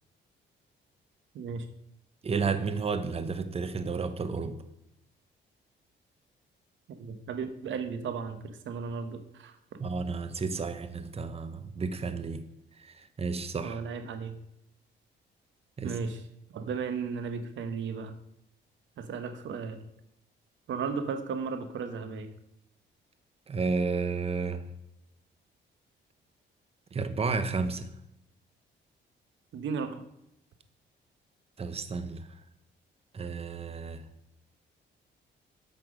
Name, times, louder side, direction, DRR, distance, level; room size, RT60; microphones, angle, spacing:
voice 1, 1.3-1.7 6.9-9.8 13.6-14.4 15.8-16.2 16.5-18.1 19.0-19.8 20.7-22.3 29.5-30.0, right 5 dB, 70° right, 9 dB, 1.2 m, -35 dB
voice 2, 2.2-4.6 9.8-12.4 12.8-13.8 15.8-16.0 23.5-24.6 26.9-27.9 31.6-32.3 33.1-34.0, right 4 dB, 30° right, 11 dB, 0.9 m, -32 dB
8.8 x 5.9 x 6.2 m, 0.83 s
cardioid pair, 90°, 20 cm